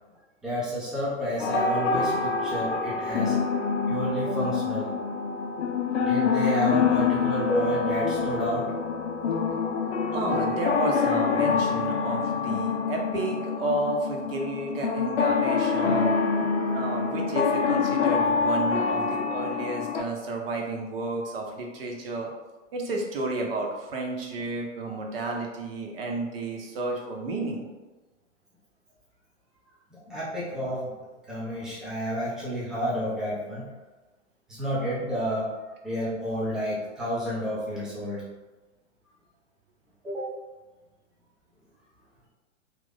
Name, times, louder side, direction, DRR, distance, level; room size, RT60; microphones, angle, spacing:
voice 1, 0.4-3.4 3.9-4.9 6.0-8.7 9.3-9.6 29.9-30.9 31.3-33.7 34.5-38.2 40.0-40.3, equal, ahead, -8 dB, 0.4 m, -30 dB
sound 1, 1.4-20.0, left 5 dB, 60° left, 0.5 m, -26 dB
voice 2, 10.1-16.1 16.7-22.3 22.7-27.6, right 2 dB, 50° right, 0 dB, 0.8 m, -31 dB
3.0 x 2.5 x 3.4 m, 1.2 s
figure-of-eight pair, 110°, 38 cm